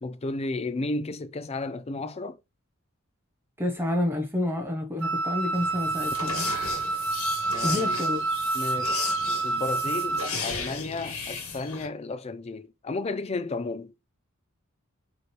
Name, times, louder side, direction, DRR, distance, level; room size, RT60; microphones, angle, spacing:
voice 1, 0.0-2.4 7.5-8.1 8.5-9.1 9.4-13.9, left 3 dB, 30° left, 0.5 m, -33 dB
voice 2, 3.6-6.5 7.6-8.2, left 1 dB, 10° right, 0.8 m, -29 dB
Wind instrument woodwind instrument, 5.0-10.4, right 3 dB, 85° right, 1.1 m, -28 dB
sound 1, 5.5-11.9, left 5 dB, 75° left, 1.5 m, -35 dB
5.0 x 3.1 x 3.2 m
head